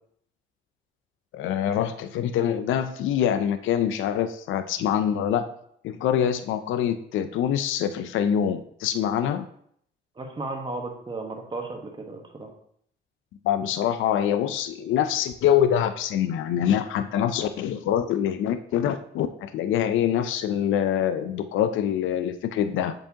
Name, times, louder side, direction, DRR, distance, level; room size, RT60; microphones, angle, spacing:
voice 1, 1.3-5.5 5.8-9.5 13.4-22.9, left 9 dB, 80° left, 10 dB, 0.5 m, -25 dB
voice 2, 10.2-12.5, right 3 dB, 25° right, 2 dB, 1.3 m, -34 dB
7.6 x 4.7 x 2.8 m, 0.66 s
cardioid pair, 90°, 20 cm